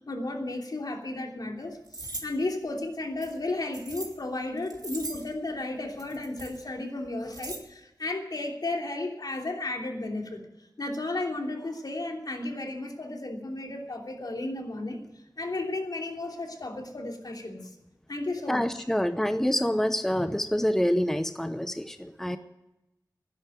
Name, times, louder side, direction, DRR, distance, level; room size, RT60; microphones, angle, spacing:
voice 1, 0.0-10.4 10.8-15.0 15.4-17.7 18.1-18.8 22.3-22.4, left 2 dB, 65° left, 2 dB, 3.0 m, -34 dB
sound 1, 1.9-2.2 3.2-4.1 4.6-5.3 6.0-6.6 7.0-7.6, right 2 dB, 65° right, 2.8 m, -39 dB
voice 2, 18.5-22.4, equal, 5° left, 10 dB, 0.8 m, -26 dB
12.5 x 10.5 x 9.2 m, 0.94 s
wide cardioid pair, 55°, 7 cm